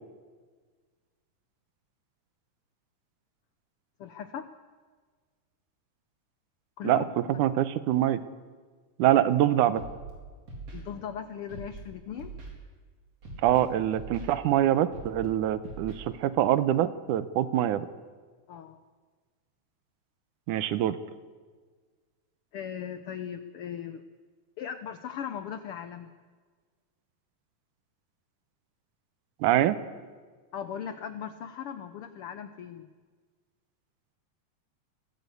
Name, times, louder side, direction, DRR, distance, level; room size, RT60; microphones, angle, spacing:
voice 1, 4.0-4.5 6.8-7.4 10.7-12.3 18.5-18.8 22.5-24.0 24.6-26.1 30.5-32.9, left 8 dB, 85° left, 10 dB, 1.2 m, -38 dB
voice 2, 6.8-8.2 9.0-9.8 13.4-17.9 20.5-21.0 29.4-29.8, right 12 dB, 80° right, 13 dB, 2.3 m, -24 dB
Scratching (performance technique), 9.8-10.1 10.5-10.8 11.5-11.8 12.2-12.5 13.2-13.6 13.9-14.3 14.9-15.3 15.6-15.9, right 3 dB, 50° right, 5.3 m, -41 dB
22.0 x 16.0 x 8.3 m, 1.5 s
omnidirectional pair, 3.7 m